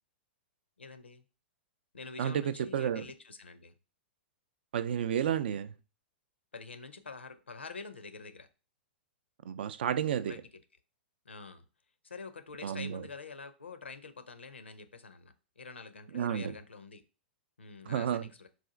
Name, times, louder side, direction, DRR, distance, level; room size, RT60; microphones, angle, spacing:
voice 1, 0.8-1.2 1.9-3.7 6.5-8.5 10.3-10.4 11.3-11.6 12.0-17.0 17.6-18.5, left 4 dB, 85° left, 10 dB, 0.5 m, -46 dB
voice 2, 2.2-3.1 4.7-5.7 9.5-10.3 12.6-13.0 16.1-16.5 17.9-18.3, right 9 dB, 65° right, 14 dB, 0.3 m, -31 dB
4.1 x 2.4 x 3.7 m, 0.33 s
figure-of-eight pair, 110°, 6 cm